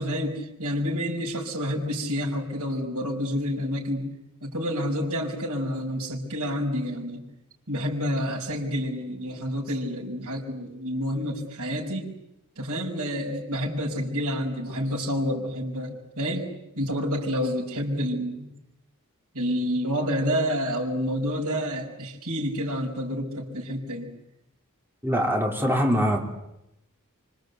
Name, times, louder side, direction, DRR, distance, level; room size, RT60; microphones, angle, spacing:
voice 1, 0.0-4.1 4.4-7.2 7.7-12.1 12.6-16.5 16.8-18.5 19.3-24.1, equal, 85° right, 5.3 m, -29 dB
voice 2, 25.0-26.2, equal, 10° right, 3.9 m, -23 dB
26.5 x 25.0 x 8.1 m
head